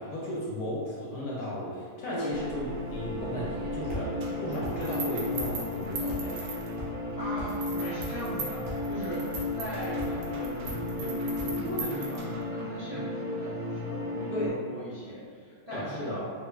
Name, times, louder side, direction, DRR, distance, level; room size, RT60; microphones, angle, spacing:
voice 1, 0.0-6.4 14.3-14.6 15.7-16.2, equal, 65° left, -6 dB, 1.1 m, -35 dB
sound 1, 2.2-14.5, left 2 dB, 85° left, 0.4 m, -34 dB
sound 2, 2.3-11.9, equal, 55° right, 1.0 m, -43 dB
sound 3, 4.2-7.0 7.5-12.6, right 4 dB, 80° right, 1.3 m, -40 dB
voice 2, 7.2-16.2, equal, 35° right, -13 dB, 0.5 m, -39 dB
3.6 x 2.2 x 3.3 m, 2.1 s
omnidirectional pair, 1.9 m